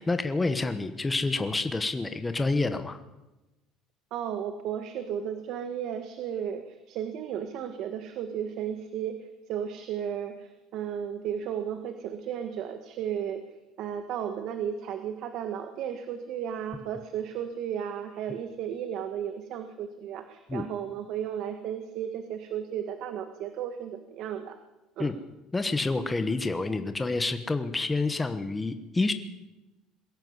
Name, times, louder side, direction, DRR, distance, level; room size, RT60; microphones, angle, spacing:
voice 1, 0.0-3.0 20.5-20.7 25.0-25.1 25.5-29.1, left 3 dB, 10° left, 9 dB, 1.1 m, -28 dB
voice 2, 4.1-13.4 13.8-24.6 25.0-25.1, right 9 dB, 55° right, 8 dB, 1.6 m, -34 dB
21.5 x 16.5 x 8.0 m, 1.0 s
cardioid pair, 155°, 0 cm